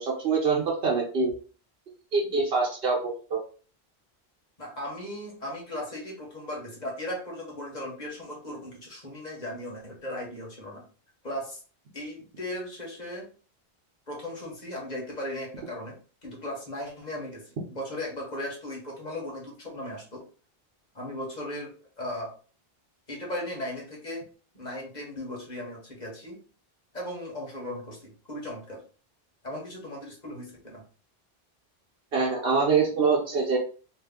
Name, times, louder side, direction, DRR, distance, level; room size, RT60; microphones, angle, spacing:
voice 1, 0.0-1.3 2.1-3.4 32.1-33.6, right 4 dB, 70° right, -2 dB, 1.0 m, -25 dB
voice 2, 4.6-10.8 11.2-11.6 11.9-13.3 14.1-16.0 16.2-20.2 20.9-22.3 23.1-24.2 24.5-26.4 26.9-28.8 29.4-30.8, left 1 dB, 45° left, -2 dB, 1.2 m, -37 dB
2.6 x 2.6 x 3.5 m, 0.38 s
omnidirectional pair, 1.0 m